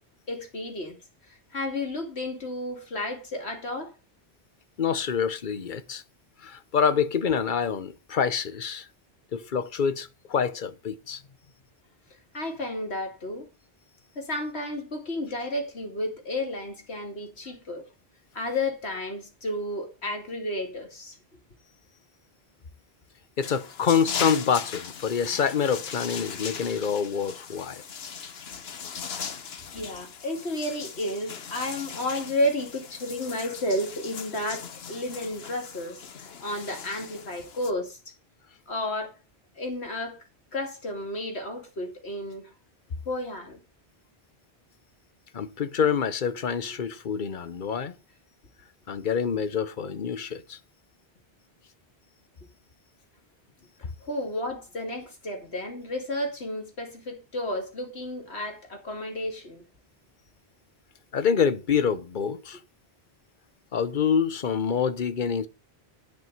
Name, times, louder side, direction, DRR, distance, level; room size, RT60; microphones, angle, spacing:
voice 1, 0.3-1.0 1.3-3.9 12.3-13.5 14.2-17.8 18.3-21.2 29.7-38.0 38.7-39.1 39.6-40.2 40.5-42.5 43.1-43.6 54.0-59.6, left 1 dB, 90° left, 2.8 m, -32 dB
voice 2, 4.8-6.0 6.4-8.9 9.3-11.2 23.4-27.8 45.3-48.0 48.9-50.6 61.1-62.6 63.7-65.5, left 7 dB, 55° left, 1.0 m, -26 dB
sound 1, 23.4-37.7, left 6 dB, 75° left, 1.2 m, -39 dB
11.0 x 5.9 x 6.6 m
omnidirectional pair, 1.1 m